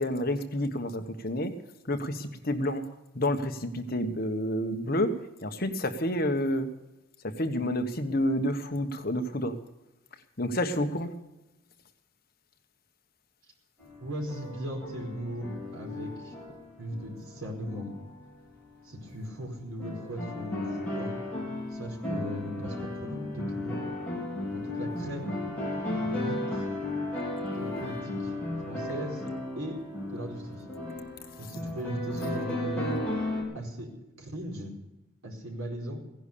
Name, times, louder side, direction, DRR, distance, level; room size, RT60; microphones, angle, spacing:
voice 1, 0.0-1.5 1.9-2.8 3.1-5.1 5.4-6.7 7.2-9.6 10.4-11.1, left 1 dB, 45° left, 7 dB, 1.3 m, -29 dB
sound 1, 13.8-18.3 18.9-19.0 19.8-33.4, left 2 dB, 5° left, 4.8 m, -35 dB
voice 2, 14.0-16.3 16.8-17.9 18.8-21.2 21.7-23.8 24.4-25.3 25.9-26.6 27.5-28.3 28.7-29.3 29.6-29.7 30.1-30.6 31.4-33.0 33.5-33.9 34.2-34.7 35.2-36.0, equal, 80° right, 0 dB, 4.8 m, -38 dB
17.0 x 11.0 x 6.8 m, 1.0 s
head